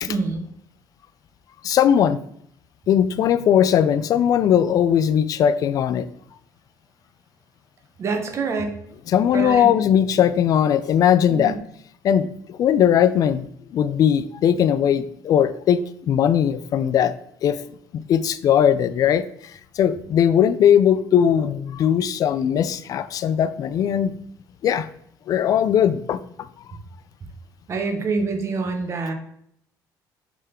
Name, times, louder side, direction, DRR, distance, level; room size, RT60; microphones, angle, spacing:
voice 1, 0.1-0.5 8.0-8.8 9.3-9.7 11.3-11.6 27.7-29.1, right 4 dB, 35° right, 4 dB, 1.1 m, -26 dB
voice 2, 1.6-2.2 2.9-6.1 9.1-11.6 12.0-13.5 13.7-17.1 17.4-17.6 17.9-19.2 19.8-24.2 24.6-24.9 25.3-26.2, left 9 dB, 50° left, 14 dB, 0.4 m, -19 dB
6.7 x 3.8 x 4.3 m, 0.71 s
cardioid pair, 130°, 8 cm